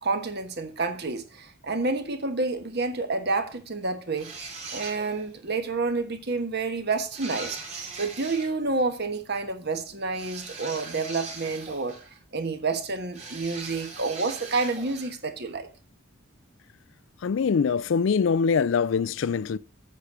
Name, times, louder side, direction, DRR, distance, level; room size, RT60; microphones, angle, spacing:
voice 1, 0.0-4.3 4.7-7.6 8.0-12.0 12.3-15.7, right 3 dB, 50° right, 1.4 m, -29 dB
sound 1, 4.1-5.3 7.1-8.5 10.1-12.2 13.1-15.2, right 4 dB, 30° right, 2.6 m, -40 dB
voice 2, 17.2-19.6, left 5 dB, 65° left, 0.4 m, -23 dB
8.3 x 6.3 x 6.8 m
head